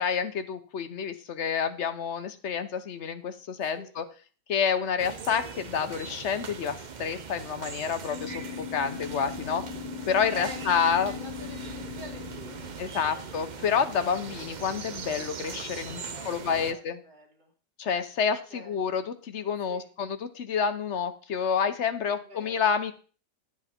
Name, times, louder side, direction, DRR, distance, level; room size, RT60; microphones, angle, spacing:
voice 1, 0.0-4.0 4.5-9.6 10.1-11.1 12.8-17.0 17.8-22.9, left 6 dB, 50° left, 10 dB, 0.9 m, -29 dB
voice 2, 3.6-3.9 10.3-12.6 15.8-17.5 18.5-18.8 19.7-19.9 22.1-22.6, equal, 90° right, -2 dB, 4.2 m, -47 dB
sound 1, 5.0-16.7, right 6 dB, 65° right, 0.4 m, -40 dB
sound 2, 8.1-13.9, left 9 dB, 85° left, 1.3 m, -40 dB
12.0 x 7.4 x 4.4 m, 0.39 s
omnidirectional pair, 1.9 m